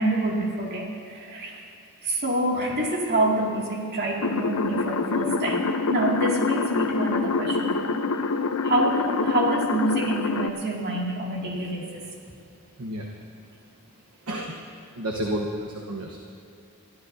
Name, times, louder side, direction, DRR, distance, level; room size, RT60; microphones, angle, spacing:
voice 1, 0.0-1.7 2.0-8.0 8.6-12.1, right 1 dB, 50° right, -2 dB, 2.3 m, -27 dB
sound 1, 4.2-10.5, left 4 dB, 70° left, 0.6 m, -26 dB
voice 2, 12.8-13.1 14.3-14.6 14.9-16.2, right 1 dB, 75° right, 0 dB, 1.1 m, -31 dB
23.0 x 14.5 x 2.7 m, 2.7 s
head